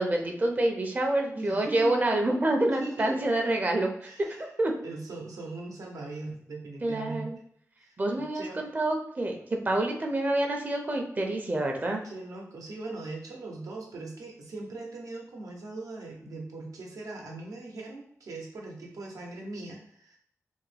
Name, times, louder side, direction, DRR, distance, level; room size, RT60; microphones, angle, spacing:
voice 1, 0.0-4.7 6.8-7.4 8.0-9.4 9.6-12.0, right 1 dB, 30° right, 2 dB, 0.5 m, -27 dB
voice 2, 1.3-1.9 2.8-3.3 4.0-4.5 4.8-7.3 7.8-8.7 12.0-20.2, right 3 dB, 85° right, -1 dB, 0.8 m, -40 dB
3.4 x 2.1 x 3.3 m, 0.67 s
wide cardioid pair, 110°, 6 cm